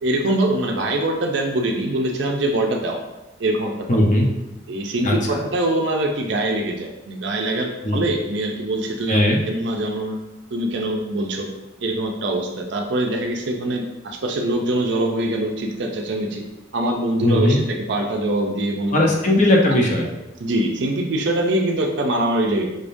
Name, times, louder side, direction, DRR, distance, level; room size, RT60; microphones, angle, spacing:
voice 1, 0.0-3.0 3.4-3.7 4.7-10.2 10.5-11.5 11.8-16.4 16.7-19.1 20.4-22.7, right 1 dB, 60° right, 2 dB, 0.5 m, -23 dB
voice 2, 3.9-4.3 5.0-5.1 7.8-8.0 9.1-9.4 17.2-17.6 18.9-20.1, left 1 dB, 35° left, -1 dB, 0.7 m, -17 dB
5.2 x 3.5 x 2.6 m, 0.98 s
head